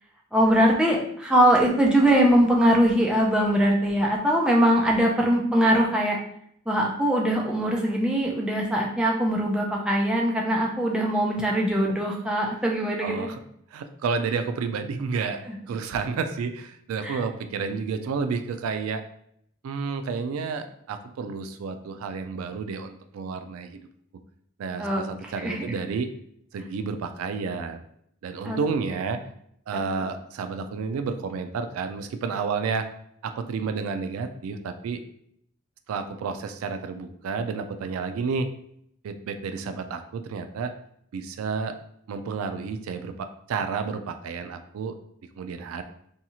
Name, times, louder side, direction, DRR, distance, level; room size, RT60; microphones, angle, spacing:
voice 1, 0.3-6.2 6.7-13.3 15.5-15.6 17.0-17.2 24.8-25.7 28.4-28.6 29.9-30.1, right 1 dB, 5° right, -2 dB, 0.4 m, -22 dB
voice 2, 13.0-13.4 13.7-19.0 19.6-23.9 24.6-26.1 26.5-27.8 28.2-29.2 29.7-32.9 33.2-35.0 35.9-38.5 39.0-40.7 41.1-41.7 42.1-45.0 45.4-45.8, right 5 dB, 90° right, 9 dB, 0.3 m, -30 dB
2.7 x 2.3 x 2.8 m, 0.70 s
head